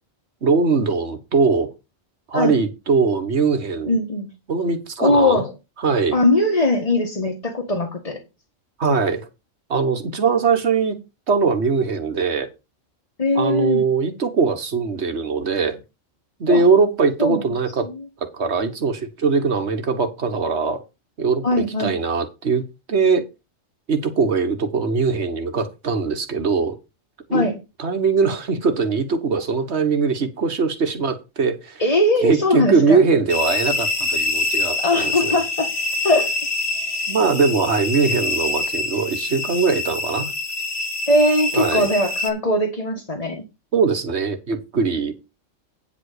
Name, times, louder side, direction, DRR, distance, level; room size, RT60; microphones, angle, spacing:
voice 1, 0.4-1.7 2.3-4.0 4.5-5.4 5.8-6.2 8.8-9.3 9.7-11.0 11.3-12.5 13.3-15.8 16.4-17.9 18.2-20.8 21.2-21.5 21.8-23.3 23.9-26.8 27.3-27.5 27.8-31.8 32.2-35.3 37.1-40.3 41.5-41.9 43.7-45.1, right 4 dB, 55° right, 1.7 m, -21 dB
voice 2, 3.9-4.3 5.0-5.5 6.1-8.2 13.2-13.8 16.5-16.6 17.2-17.4 17.8-18.0 21.4-21.9 27.3-27.6 31.8-33.0 34.8-35.7 36.0-36.3 41.1-43.4, left 1 dB, 30° left, 1.7 m, -20 dB
sound 1, 33.3-42.3, left 2 dB, 55° left, 1.8 m, -25 dB
9.6 x 5.0 x 6.7 m
omnidirectional pair, 1.3 m